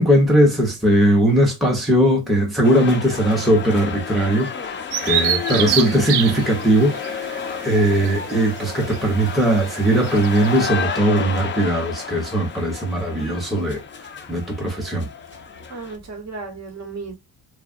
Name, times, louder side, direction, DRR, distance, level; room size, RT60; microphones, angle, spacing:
voice 1, 0.0-13.8 14.3-15.1, right 1 dB, ahead, 0.9 m, -19 dB
sound 1, 2.6-16.0, left 6 dB, 30° left, 0.5 m, -31 dB
Bird vocalization bird call bird song, 4.9-10.6, right 10 dB, 90° right, 0.6 m, -27 dB
voice 2, 15.7-17.1, right 4 dB, 40° right, 1.1 m, -35 dB
3.0 x 2.4 x 2.5 m
cardioid pair, 110°, 43 cm